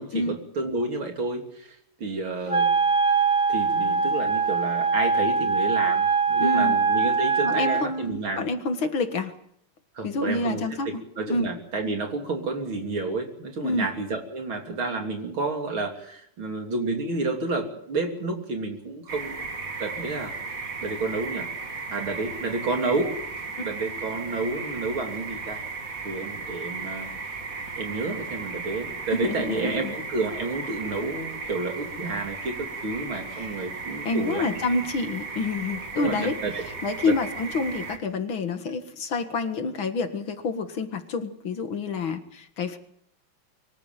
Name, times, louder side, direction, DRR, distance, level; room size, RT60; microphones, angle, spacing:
voice 1, 0.0-2.7 3.5-8.5 10.0-19.5 19.8-20.3 20.8-21.5 21.9-23.2 23.6-25.6 26.0-27.1 27.8-34.5 36.0-36.6 37.0-37.1, right 3 dB, 65° right, 3 dB, 4.0 m, -30 dB
Wind instrument woodwind instrument, 2.5-7.9, right 5 dB, 10° left, 2.2 m, -22 dB
voice 2, 6.4-6.8 7.4-9.3 10.0-11.0 11.3-11.5 13.6-13.9 23.6-23.7 29.1-29.9 33.3-33.5 34.1-42.8, left 3 dB, 65° left, 8 dB, 2.6 m, -28 dB
sound 1, 19.1-38.0, right 4 dB, 40° right, 2.6 m, -36 dB
24.5 x 13.5 x 9.2 m, 0.70 s
omnidirectional pair, 2.4 m